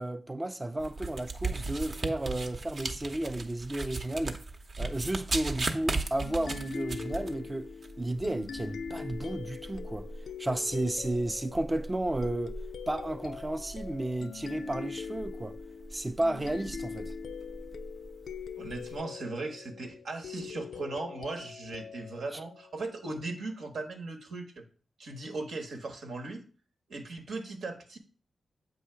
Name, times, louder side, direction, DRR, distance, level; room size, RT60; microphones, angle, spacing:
voice 1, 0.0-4.4 4.8-7.7 8.0-12.6 12.9-15.6 15.9-17.1 22.3-22.4, right 1 dB, 25° right, 0.4 m, -33 dB
sound 1, 0.8-19.0, right 3 dB, 60° right, 0.8 m, -38 dB
sound 2, 6.2-23.4, left 6 dB, 80° left, 0.3 m, -43 dB
voice 2, 18.6-24.6 25.0-26.4 26.9-28.0, right 3 dB, 80° right, 1.1 m, -38 dB
7.8 x 2.8 x 5.7 m
cardioid pair, 55°, 0 cm